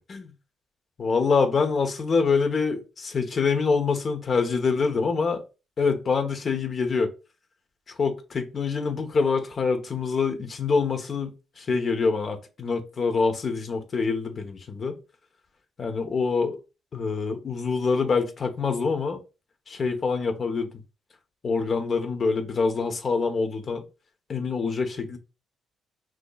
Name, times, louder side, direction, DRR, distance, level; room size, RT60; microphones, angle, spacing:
voice 1, 1.0-5.4 5.8-7.1 7.9-15.0 15.8-16.6 16.9-19.2 19.7-20.7 21.4-23.8 24.3-25.2, left 4 dB, 45° left, 1.1 m, -25 dB
6.0 x 3.1 x 2.4 m
cardioid pair, 90°, 0 cm